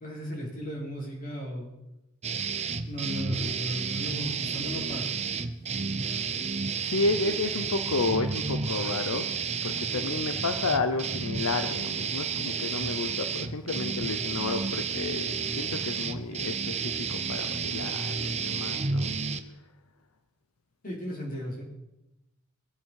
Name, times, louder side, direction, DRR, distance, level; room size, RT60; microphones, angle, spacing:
voice 1, 0.0-1.7 2.8-5.2 20.8-21.6, equal, 40° left, -3 dB, 4.9 m, -35 dB
sound 1, 2.2-19.4, right 5 dB, 30° right, 0.8 m, -31 dB
voice 2, 6.8-9.3 9.6-19.2, left 3 dB, 85° left, 9 dB, 0.8 m, -31 dB
23.0 x 8.1 x 4.8 m, 0.93 s
head